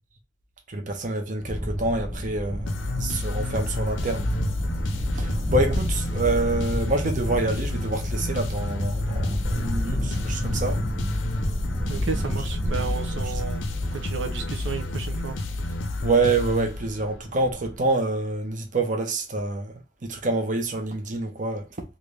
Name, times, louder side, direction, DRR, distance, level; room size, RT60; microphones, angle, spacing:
voice 1, 0.7-4.3 5.1-10.8 16.0-19.7 20.0-21.7, right 2 dB, 45° right, 0.8 m, -27 dB
sound 1, 1.4-17.8, equal, ahead, 0.7 m, -31 dB
sound 2, 2.7-17.2, left 2 dB, 85° left, 0.6 m, -31 dB
voice 2, 11.9-13.6 13.9-15.4, right 5 dB, 80° right, 0.6 m, -32 dB
3.3 x 2.5 x 3.2 m
head